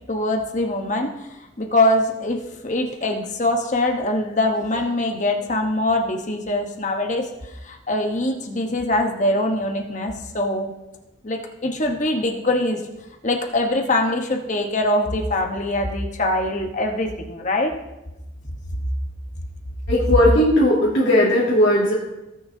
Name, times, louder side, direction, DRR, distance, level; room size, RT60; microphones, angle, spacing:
voice 1, 0.1-1.1 1.6-7.3 7.6-10.7 11.2-12.8 13.2-17.7, left 1 dB, 40° left, 2 dB, 1.1 m, -23 dB
voice 2, 19.9-21.9, left 1 dB, 60° left, -7 dB, 2.3 m, -17 dB
17.5 x 6.4 x 2.8 m, 0.97 s
head